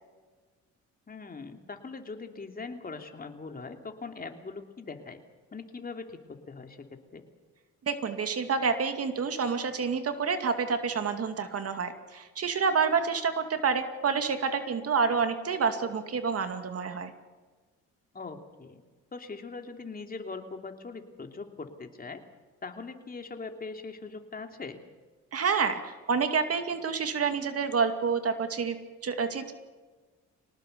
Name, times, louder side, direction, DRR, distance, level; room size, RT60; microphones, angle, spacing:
voice 1, 1.1-5.2 5.5-7.2 18.1-18.8 19.1-22.2 22.6-24.8, left 4 dB, 30° left, 5 dB, 3.0 m, -41 dB
voice 2, 7.9-17.1 25.3-28.8 29.0-29.5, right 5 dB, 50° right, 7 dB, 2.3 m, -28 dB
25.0 x 19.0 x 6.9 m, 1.4 s
cardioid pair, 90°, 30 cm